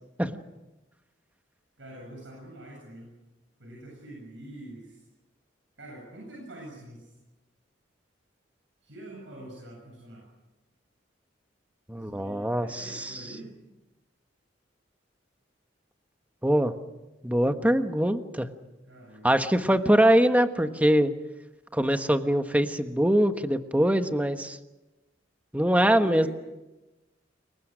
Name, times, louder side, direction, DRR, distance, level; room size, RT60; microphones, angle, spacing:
voice 1, 1.8-3.1 3.6-5.0 5.8-7.1 8.8-10.2 11.9-13.5 18.8-20.1 25.8-26.3, right 1 dB, 75° right, -2 dB, 7.6 m, -45 dB
voice 2, 11.9-13.3 16.4-16.7 17.2-18.5 19.2-21.1 21.7-24.6 25.5-26.3, right 1 dB, 10° right, 8 dB, 1.2 m, -23 dB
30.0 x 23.0 x 6.3 m, 1.0 s
head